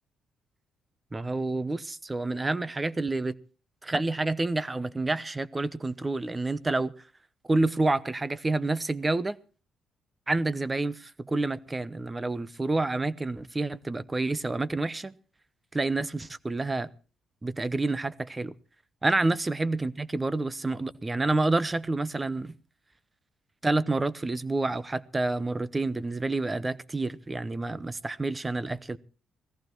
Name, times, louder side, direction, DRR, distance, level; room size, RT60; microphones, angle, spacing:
voice 1, 1.1-3.4 3.8-6.9 7.5-9.4 10.3-15.2 15.7-16.9 17.4-18.5 19.0-22.5 23.6-29.0, right 2 dB, 20° right, 0.9 m, -28 dB
17.0 x 14.5 x 4.6 m
cardioid pair, 90°, 0 cm